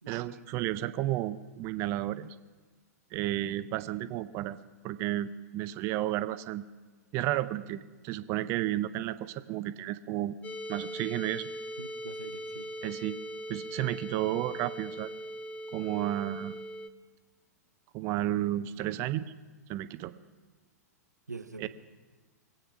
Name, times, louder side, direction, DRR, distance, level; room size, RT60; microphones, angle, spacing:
voice 1, 0.1-2.3 3.1-4.6 4.8-6.6 7.1-10.4 10.7-11.5 12.8-13.2 13.5-15.1 15.7-16.6 17.9-19.3 19.7-20.1 21.6-21.7, right 14 dB, 30° right, 13 dB, 0.6 m, -32 dB
sound 1, 10.4-16.9, equal, 15° left, 0.7 m, -40 dB
voice 2, 11.8-12.7 21.3-21.7, right 4 dB, 80° right, 10 dB, 0.9 m, -44 dB
23.0 x 8.8 x 6.0 m, 1.4 s
figure-of-eight pair, 105°, 9 cm